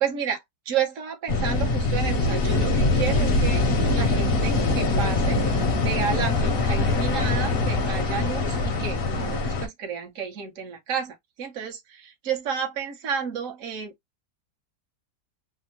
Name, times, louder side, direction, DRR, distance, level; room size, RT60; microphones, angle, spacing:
voice 1, 0.0-3.6 3.9-13.9, right 7 dB, 55° right, 1.3 m, -31 dB
sound 1, 1.3-9.7, left 2 dB, 50° left, 0.8 m, -23 dB
3.4 x 2.0 x 2.9 m
omnidirectional pair, 1.7 m